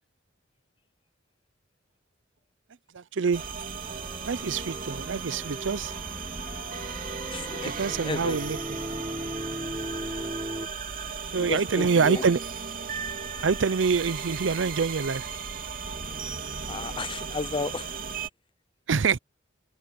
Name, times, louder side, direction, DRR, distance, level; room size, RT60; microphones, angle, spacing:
voice 1, 2.9-3.4 4.3-5.9 7.8-8.6 11.3-12.4 13.4-15.3 18.9-19.2, right 5 dB, 70° right, 0.6 m, -25 dB
sound 1, 3.3-18.3, right 5 dB, 50° right, 2.7 m, -36 dB
sound 2, 3.8-10.7, equal, 15° right, 1.2 m, -38 dB
voice 2, 7.3-7.7 8.0-8.4 11.3-12.2 16.6-17.9, left 3 dB, 25° left, 0.6 m, -33 dB
head